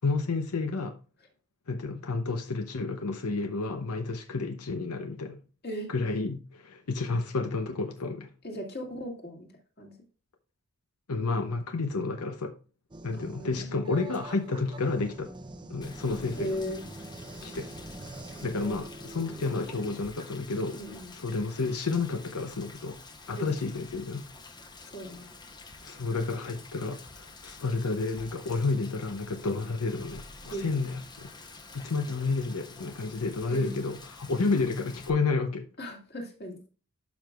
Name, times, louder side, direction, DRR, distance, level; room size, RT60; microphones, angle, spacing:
voice 1, 0.0-1.0 1.7-5.4 5.9-8.3 11.1-12.5 13.0-15.3 15.7-16.6 17.4-17.7 18.4-23.0 23.3-24.3 25.8-31.3 31.7-35.7, left 3 dB, 85° left, 0.8 m, -31 dB
voice 2, 8.4-9.5 9.8-10.0 13.2-13.9 16.4-16.8 18.5-18.7 20.7-21.1 23.4-23.5 24.8-25.3 30.5-30.6 33.5-33.7 35.8-36.6, equal, 45° left, 2.3 m, -37 dB
sound 1, 12.9-19.9, right 1 dB, 20° right, 0.6 m, -45 dB
Rain, 15.8-35.1, left 3 dB, 20° left, 0.8 m, -49 dB
11.5 x 6.0 x 2.4 m
head